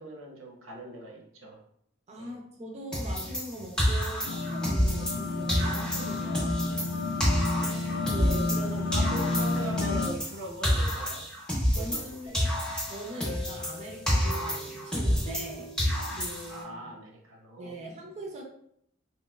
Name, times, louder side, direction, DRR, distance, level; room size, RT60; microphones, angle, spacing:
voice 1, 0.0-1.6 2.2-2.3 7.5-8.1 8.9-11.2 11.7-12.5 16.5-17.8, right 2 dB, 90° right, 0 dB, 0.7 m, -41 dB
voice 2, 2.1-6.7 8.1-9.1 11.7-12.4 12.8-16.9 17.6-18.4, right 1 dB, 35° right, 0 dB, 0.5 m, -41 dB
sound 1, 2.9-5.2 5.5-8.7 8.9-12.1 12.3-15.5 15.8-16.6, equal, 5° left, 0.7 m, -29 dB
sound 2, 4.2-10.1, left 3 dB, 55° left, 0.3 m, -30 dB
sound 3, 12.3-16.9, left 1 dB, 80° left, 0.7 m, -45 dB
2.9 x 2.9 x 2.3 m, 0.70 s
head